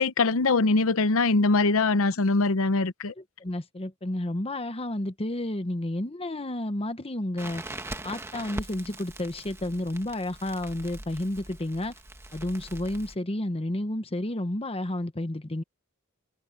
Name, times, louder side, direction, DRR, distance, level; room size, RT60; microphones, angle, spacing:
voice 1, 0.0-3.1, left 3 dB, 70° left, 0.8 m, -22 dB
voice 2, 3.2-7.6 8.0-11.9 12.3-15.6, left 1 dB, 30° left, 1.1 m, -31 dB
Crackle, 7.4-13.2, right 1 dB, 10° right, 1.4 m, -41 dB
head